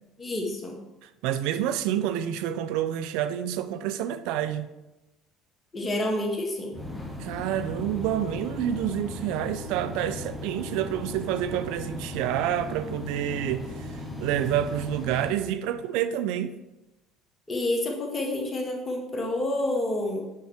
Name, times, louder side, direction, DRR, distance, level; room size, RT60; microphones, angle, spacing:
voice 1, 0.2-0.8 5.7-6.8 17.5-20.2, left 1 dB, 30° left, 1.7 m, -28 dB
voice 2, 1.0-4.7 7.2-16.5, right 11 dB, 70° right, 0.3 m, -28 dB
sound 1, 6.7-15.3, left 1 dB, ahead, 1.6 m, -37 dB
6.4 x 5.8 x 3.4 m
hypercardioid pair, 65°, 0 cm